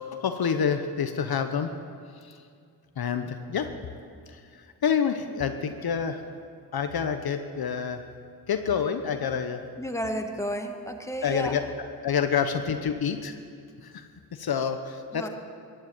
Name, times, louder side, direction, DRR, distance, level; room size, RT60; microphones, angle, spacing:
voice 1, 0.0-1.7 2.2-2.4 3.0-3.7 4.3-6.2 6.7-8.0 8.5-9.7 11.2-11.6 12.0-13.4 13.8-14.0 14.3-15.3, left 7 dB, 60° left, 8 dB, 0.9 m, -28 dB
voice 2, 9.8-11.6 15.1-15.3, equal, 5° left, 4 dB, 1.6 m, -32 dB
15.0 x 9.2 x 9.0 m, 2.3 s
cardioid pair, 50°, 41 cm